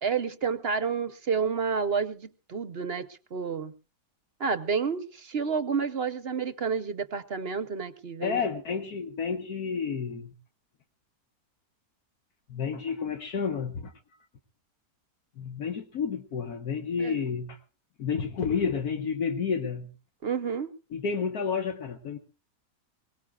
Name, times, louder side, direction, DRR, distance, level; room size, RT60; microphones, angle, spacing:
voice 1, 0.0-3.7 4.4-8.4 17.0-17.2 20.2-20.7, right 5 dB, 50° right, 12 dB, 0.9 m, -30 dB
voice 2, 8.2-10.3 12.5-13.9 15.4-17.6 18.0-19.9 20.9-22.2, left 6 dB, 70° left, 6 dB, 1.6 m, -30 dB
22.5 x 19.0 x 2.3 m, 0.35 s
omnidirectional pair, 1.7 m